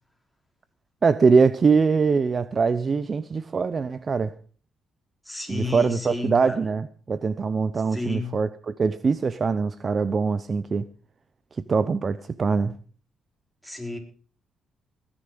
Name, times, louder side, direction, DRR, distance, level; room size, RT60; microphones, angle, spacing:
voice 1, 1.0-4.3 5.5-10.8 11.7-12.7, right 5 dB, 40° right, 0.7 m, -23 dB
voice 2, 5.2-6.6 7.9-8.4 13.6-14.0, left 3 dB, ahead, 4.6 m, -32 dB
19.5 x 10.0 x 5.2 m
cardioid pair, 90°, 0 cm